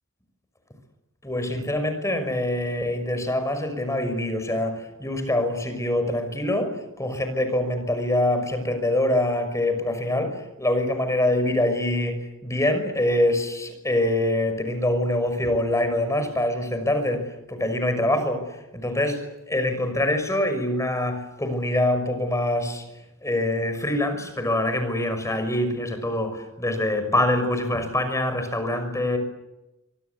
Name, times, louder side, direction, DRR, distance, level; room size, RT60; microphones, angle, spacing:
voice 1, 1.2-22.8 23.2-29.2, left 1 dB, 15° left, 8 dB, 5.9 m, -25 dB
27.5 x 24.5 x 8.4 m, 0.98 s
head